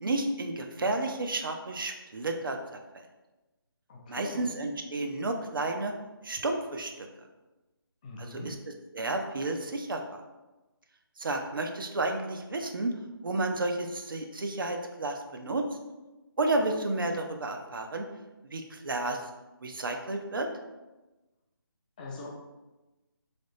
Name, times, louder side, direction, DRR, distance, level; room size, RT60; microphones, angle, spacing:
voice 1, 0.0-2.6 2.9-3.0 4.1-5.9 6.2-7.1 8.2-8.5 8.9-10.2 11.2-12.9 13.2-15.6 16.4-18.0 18.5-19.2 19.6-20.5, right 2 dB, 65° right, 4 dB, 0.6 m, -31 dB
voice 2, 3.9-4.5 8.0-8.5 22.0-22.3, left 2 dB, 20° left, -2 dB, 0.5 m, -41 dB
3.4 x 3.0 x 4.0 m, 1.1 s
figure-of-eight pair, 155°, 12 cm